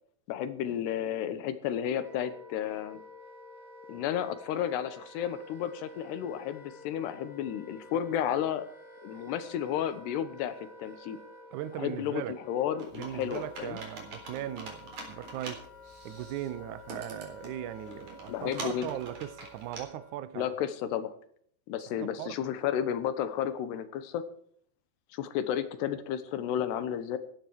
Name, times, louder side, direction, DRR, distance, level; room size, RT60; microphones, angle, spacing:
voice 1, 0.3-3.0 3.9-8.7 9.0-11.2 11.8-13.8 18.3-18.9 20.4-21.1 21.7-24.2 25.1-27.2, left 9 dB, 80° left, 3.2 m, -32 dB
Wind instrument woodwind instrument, 1.5-20.3, left 3 dB, 35° left, 4.6 m, -51 dB
voice 2, 11.5-12.4 12.9-15.7 16.0-20.4 21.9-22.4, right 12 dB, 85° right, 1.7 m, -38 dB
Computer keyboard, 12.8-19.8, right 3 dB, 45° right, 4.9 m, -45 dB
15.0 x 12.5 x 4.7 m
omnidirectional pair, 4.9 m